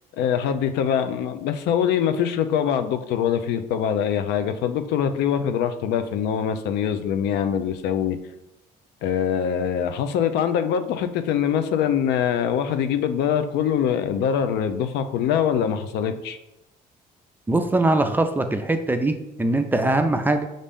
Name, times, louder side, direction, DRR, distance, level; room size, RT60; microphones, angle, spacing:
voice 1, 0.2-8.2 9.0-16.4, left 8 dB, 80° left, 9 dB, 0.4 m, -23 dB
voice 2, 17.5-20.4, right 2 dB, 10° right, 6 dB, 0.3 m, -22 dB
5.2 x 2.6 x 3.5 m, 0.91 s
cardioid pair, 110°, 17 cm